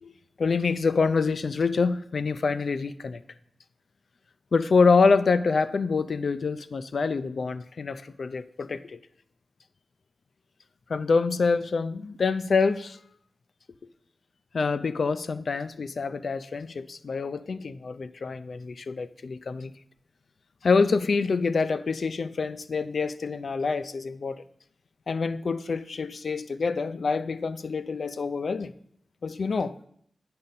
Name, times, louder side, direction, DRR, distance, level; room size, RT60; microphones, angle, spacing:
voice 1, 0.4-3.2 4.5-9.0 10.9-13.0 14.5-19.7 20.6-24.4 25.1-28.7 29.2-29.7, left 4 dB, 65° left, 0.3 m, -26 dB
8.6 x 5.4 x 4.0 m
wide cardioid pair, 135°, 0 cm